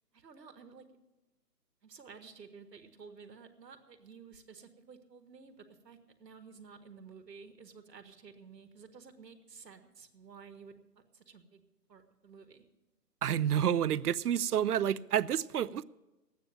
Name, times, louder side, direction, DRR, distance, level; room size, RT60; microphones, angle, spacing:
voice 1, 0.1-0.9 1.8-11.6 11.9-12.6, right 5 dB, 85° right, 1.9 m, -53 dB
voice 2, 13.2-15.8, right 9 dB, 70° right, 0.6 m, -29 dB
11.5 x 9.1 x 8.9 m
hypercardioid pair, 180°, 48 cm